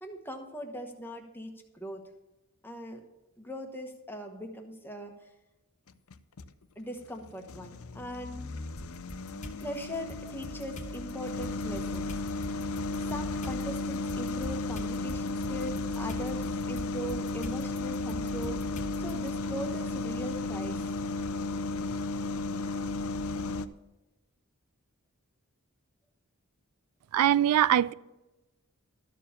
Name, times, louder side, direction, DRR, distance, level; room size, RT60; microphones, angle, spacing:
voice 1, 0.0-2.0 2.6-3.0 3.4-5.1 6.8-8.5 9.6-12.7 13.1-20.8, equal, 10° left, 1.1 m, -40 dB
sound 1, 5.9-6.5 7.1-23.7, left 2 dB, 70° left, 0.5 m, -34 dB
sound 2, 8.8-9.6 10.1-19.3, equal, 35° left, 1.2 m, -43 dB
voice 2, 27.1-27.9, right 11 dB, 90° right, 0.3 m, -22 dB
13.0 x 4.6 x 7.1 m
head